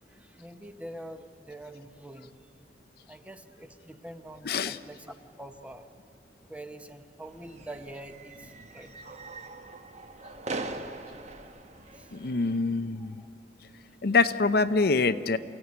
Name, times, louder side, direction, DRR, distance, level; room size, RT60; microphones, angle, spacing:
voice 1, 0.1-2.3 3.1-5.9 6.5-9.0 11.9-12.3 13.0-13.3, right 1 dB, 10° right, 7 dB, 1.1 m, -45 dB
voice 2, 4.4-4.8 12.1-13.2 14.0-15.4, left 4 dB, 60° left, 12 dB, 0.6 m, -25 dB
sound 1, 7.2-12.6, right 2 dB, 40° right, 1.3 m, -41 dB
28.0 x 15.5 x 9.7 m, 2.7 s
head